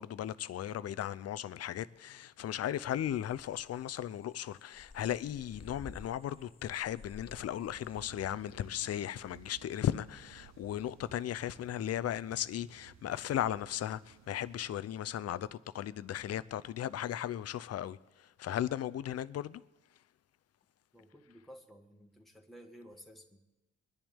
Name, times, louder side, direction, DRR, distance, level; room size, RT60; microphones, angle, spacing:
voice 1, 0.0-19.6, left 11 dB, 55° left, 0.6 m, -36 dB
sound 1, 3.1-8.0, left 3 dB, 20° left, 0.9 m, -53 dB
sound 2, 7.6-14.7, right 10 dB, 65° right, 0.7 m, -58 dB
voice 2, 20.9-23.4, equal, ahead, 1.6 m, -54 dB
23.0 x 10.5 x 3.6 m
cardioid pair, 90°, 30 cm